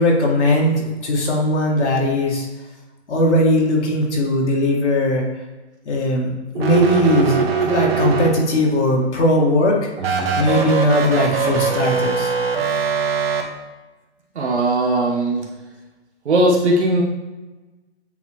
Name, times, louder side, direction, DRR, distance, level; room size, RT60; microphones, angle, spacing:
voice 1, 0.0-2.5 3.1-5.2 5.9-10.1 10.4-12.3, left 1 dB, 75° left, -2 dB, 1.9 m, -19 dB
sound 1, 6.5-8.7 10.0-13.4, right 5 dB, 55° right, 1.0 m, -21 dB
voice 2, 14.3-15.5 16.2-17.0, right 1 dB, 70° right, -2 dB, 1.2 m, -18 dB
8.3 x 3.6 x 3.1 m, 1.2 s
hypercardioid pair, 160°, 35 cm